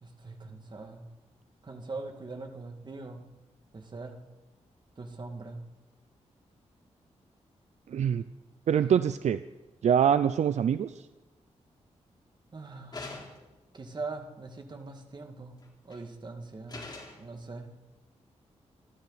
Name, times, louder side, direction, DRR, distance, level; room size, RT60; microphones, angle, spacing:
voice 1, 0.0-1.1 1.6-3.2 3.7-4.2 5.0-5.6 12.5-13.2 13.7-15.6 15.8-16.8 17.2-17.7, right 3 dB, 40° right, 4 dB, 2.2 m, -41 dB
voice 2, 7.9-8.2 8.7-9.4 9.8-10.9, right 8 dB, 75° right, 12 dB, 0.5 m, -24 dB
sound 1, 12.9-13.6 15.6-16.0 16.7-17.3, left 3 dB, 35° left, 3.9 m, -42 dB
28.0 x 12.0 x 4.2 m, 1.1 s
wide cardioid pair, 110°, 12 cm